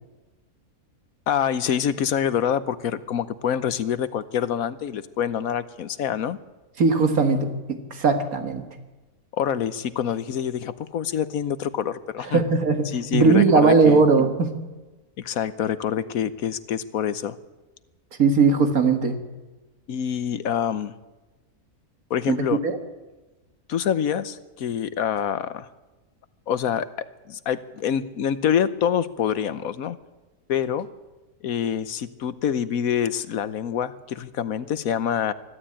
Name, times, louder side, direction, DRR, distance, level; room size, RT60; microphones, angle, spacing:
voice 1, 1.3-6.4 9.3-12.4 12.8-14.0 15.2-17.4 19.9-20.9 22.1-22.6 23.7-25.7 26.5-26.9 27.3-30.0 30.5-30.9 31.4-35.3, left 8 dB, 75° left, 14 dB, 1.3 m, -26 dB
voice 2, 6.8-8.7 12.3-14.5 18.2-19.2 22.3-22.4 22.6-22.8, right 4 dB, 70° right, 6 dB, 2.2 m, -19 dB
24.5 x 12.0 x 8.8 m, 1.2 s
omnidirectional pair, 1.5 m